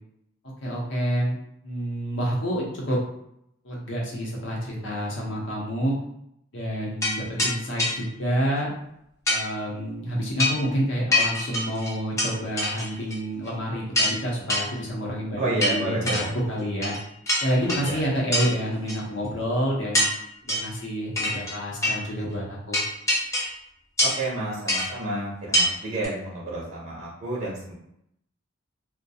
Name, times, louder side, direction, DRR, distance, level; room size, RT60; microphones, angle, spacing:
voice 1, 0.4-1.4 1.6-3.0 3.6-6.0 6.5-8.7 9.3-16.9 17.4-20.1 20.4-22.8, equal, 65° left, -3 dB, 0.7 m, -28 dB
sound 1, 7.0-7.1 7.4-7.5 7.8-7.9 9.3-9.4 10.4-10.6 11.1-12.3 12.6-13.2 13.5-13.6 13.9-14.2 14.5-14.6 15.6-16.2 16.8-17.0 17.3-17.9 18.3-18.5 18.9-19.0 19.9-20.1 20.5-20.7 21.2-21.5 21.8-22.0 22.7-23.6 24.0-24.3 24.7-24.9 25.5-25.7 26.0-26.1, left 1 dB, 15° left, 0.5 m, -24 dB
voice 2, 15.4-16.3 17.6-18.0 24.0-27.7, right 2 dB, 40° right, -7 dB, 0.6 m, -30 dB
2.3 x 2.2 x 2.7 m, 0.77 s
head